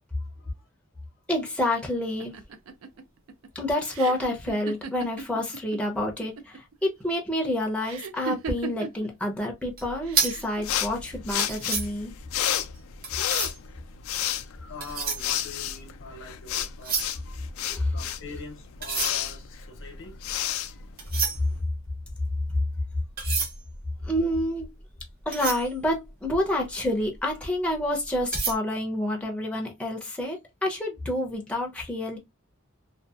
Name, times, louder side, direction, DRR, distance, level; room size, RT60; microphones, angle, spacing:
voice 1, 0.2-0.6 2.9-3.0 14.3-17.4 17.9-20.4 20.7-20.9, left 3 dB, 65° left, 0.8 m, -44 dB
voice 2, 1.3-2.3 3.5-12.1 17.7-17.9 24.0-24.7 25.3-32.2, left 1 dB, 5° left, 0.5 m, -28 dB
sound 1, 2.2-5.8 6.1-6.7 7.8-9.1 10.0-10.6, right 5 dB, 75° right, 0.4 m, -37 dB
sound 2, 9.7-13.7 14.5-16.2 16.5-18.2 18.7-26.7 27.2-27.3 27.7-28.5, right 5 dB, 45° right, 0.8 m, -32 dB
sound 3, 10.6-21.6, left 11 dB, 85° left, 0.3 m, -32 dB
2.6 x 2.3 x 2.3 m
head